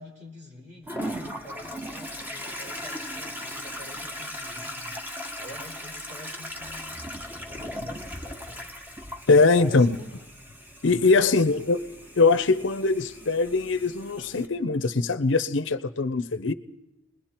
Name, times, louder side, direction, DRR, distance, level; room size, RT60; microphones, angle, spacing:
voice 1, 0.0-8.8 9.6-10.2 11.2-11.6, left 1 dB, 35° right, 5.4 m, -46 dB
Toilet flush, 0.9-14.5, equal, 10° right, 1.2 m, -38 dB
voice 2, 9.3-10.0 10.8-11.8 12.2-16.5, left 3 dB, 60° left, 0.7 m, -22 dB
28.0 x 21.0 x 4.5 m
head